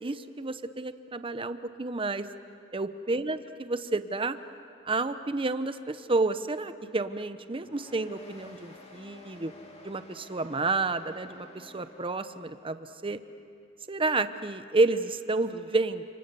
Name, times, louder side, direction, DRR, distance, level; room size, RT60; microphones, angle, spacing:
voice 1, 0.0-2.2 2.7-4.4 4.9-9.5 9.8-13.2 13.9-16.0, right 3 dB, 25° right, 11 dB, 0.9 m, -30 dB
sound 1, 7.6-12.7, left 2 dB, 30° left, 2.8 m, -51 dB
30.0 x 27.0 x 6.9 m, 2.6 s
head